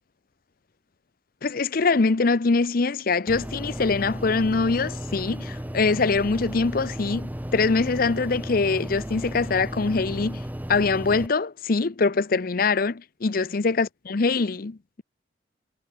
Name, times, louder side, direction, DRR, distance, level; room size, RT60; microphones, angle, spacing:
voice 1, 1.4-10.4 10.7-15.0, left 4 dB, 50° left, 0.6 m, -23 dB
sound 1, 3.3-11.3, equal, 10° right, 1.1 m, -34 dB
head